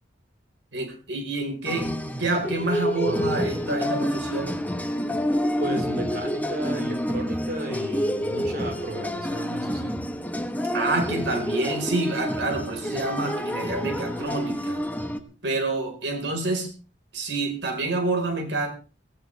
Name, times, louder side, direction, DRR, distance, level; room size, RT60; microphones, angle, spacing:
voice 1, 0.7-1.9 2.2-4.5 10.7-14.8 15.4-16.7 17.1-18.7, right 2 dB, 75° right, 3 dB, 4.5 m, -28 dB
sound 1, 1.6-15.2, equal, 10° left, 1.2 m, -28 dB
voice 2, 5.6-10.0, right 1 dB, 60° right, 4 dB, 4.2 m, -34 dB
17.5 x 17.0 x 3.4 m, 0.36 s
head